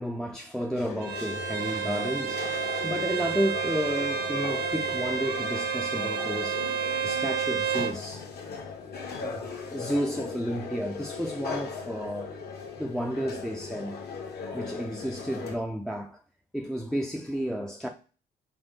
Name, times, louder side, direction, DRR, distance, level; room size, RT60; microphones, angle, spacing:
voice 1, 0.0-8.3 9.2-12.3 12.8-14.0 14.5-16.2 16.5-17.9, equal, ahead, 0.3 m, -32 dB
sound 1, 0.8-15.6, left 5 dB, 65° left, 1.0 m, -38 dB
Bowed string instrument, 1.0-8.0, right 8 dB, 70° right, 0.5 m, -30 dB
Wind instrument woodwind instrument, 3.5-7.9, left 4 dB, 85° left, 1.1 m, -40 dB
5.0 x 2.0 x 3.8 m
cardioid pair, 120°, 18 cm